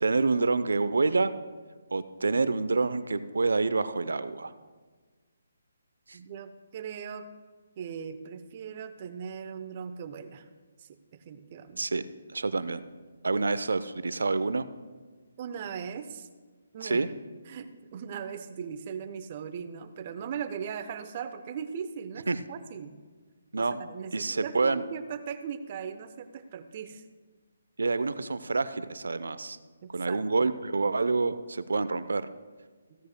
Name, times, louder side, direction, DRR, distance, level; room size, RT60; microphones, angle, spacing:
voice 1, 0.0-1.3 1.9-4.5 6.1-6.2 11.8-12.1 12.3-12.8 13.2-14.7 16.8-17.1 22.3-22.4 23.5-23.8 24.1-24.8 27.8-29.6 29.9-32.3, right 3 dB, 75° right, 14 dB, 0.6 m, -27 dB
voice 2, 6.1-7.3 7.8-10.5 10.8-10.9 11.2-11.9 15.4-16.3 16.7-17.1 17.5-22.9 23.6-27.0 29.8-30.2, right 7 dB, 40° right, 10 dB, 0.8 m, -39 dB
15.5 x 14.5 x 2.2 m, 1.4 s
figure-of-eight pair, 145°, 0 cm